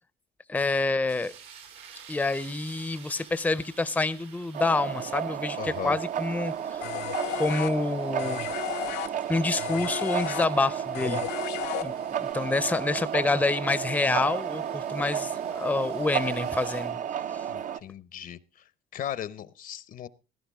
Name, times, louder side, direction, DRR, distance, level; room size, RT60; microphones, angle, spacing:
voice 1, 0.5-1.3 2.1-6.8 7.3-8.4 9.3-11.2 11.8-11.9 12.2-17.0, left 3 dB, 10° left, 16 dB, 0.6 m, -27 dB
sound 1, 1.0-16.9, right 7 dB, 85° right, 3.4 m, -53 dB
sound 2, 4.5-17.8, right 9 dB, 50° right, 0.6 m, -32 dB
voice 2, 5.6-6.0 17.5-18.6 18.9-20.1, left 10 dB, 55° left, 18 dB, 0.7 m, -37 dB
sound 3, 6.8-12.3, left 14 dB, 85° left, 0.8 m, -34 dB
16.0 x 12.0 x 3.5 m, 0.29 s
cardioid pair, 110°, 17 cm